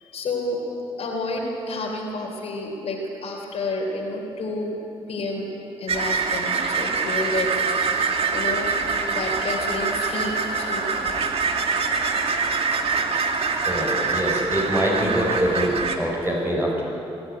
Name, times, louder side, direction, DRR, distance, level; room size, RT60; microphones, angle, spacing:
voice 1, 0.1-0.6 1.0-4.8 5.1-5.5 5.8-7.5 8.0-8.8 9.1-11.2, left 2 dB, 70° left, -1 dB, 3.3 m, -30 dB
sound 1, 5.9-16.0, right 4 dB, 60° right, 2.1 m, -24 dB
voice 2, 13.6-16.8, equal, 20° right, -3 dB, 6.5 m, -24 dB
23.0 x 12.5 x 9.6 m, 2.9 s
cardioid pair, 65°, 11 cm